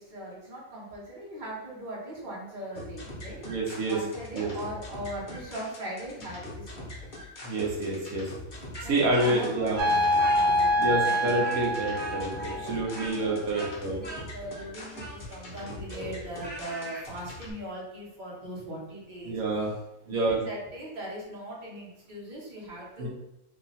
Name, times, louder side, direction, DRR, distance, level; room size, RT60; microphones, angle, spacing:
voice 1, 0.0-3.4 3.9-7.1 8.8-11.4 11.9-13.7 14.0-19.4 20.0-23.1, right 1 dB, 35° right, -5 dB, 1.3 m, -40 dB
sound 1, 2.7-17.5, left 1 dB, 40° left, 1.0 m, -43 dB
voice 2, 3.4-4.0 4.3-4.5 7.4-8.3 8.9-9.8 10.8-14.0 19.3-19.7 20.1-20.4 23.0-23.1, right 2 dB, 85° right, -2 dB, 1.3 m, -28 dB
Speech, 8.7-10.8 11.0-17.1, right 1 dB, 15° left, 0.4 m, -42 dB
sound 2, 9.8-13.0, left 1 dB, 65° right, 0.9 m, -25 dB
3.2 x 3.0 x 4.0 m, 0.88 s
omnidirectional pair, 1.5 m